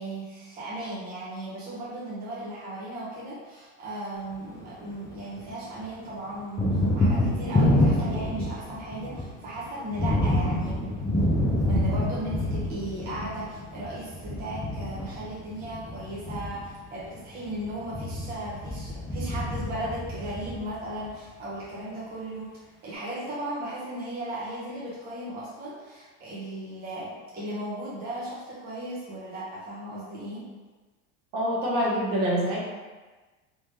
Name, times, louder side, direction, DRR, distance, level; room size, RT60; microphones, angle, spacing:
voice 1, 0.0-10.9 11.7-22.5 22.8-30.5, right 1 dB, 30° right, -8 dB, 0.9 m, -36 dB
Thunder, 4.3-5.5 5.8-21.1, left 1 dB, 10° left, 0.5 m, -28 dB
voice 2, 31.3-32.6, equal, 55° right, -5 dB, 1.4 m, -25 dB
3.5 x 2.9 x 3.2 m, 1.3 s
supercardioid pair, 135°, 32 cm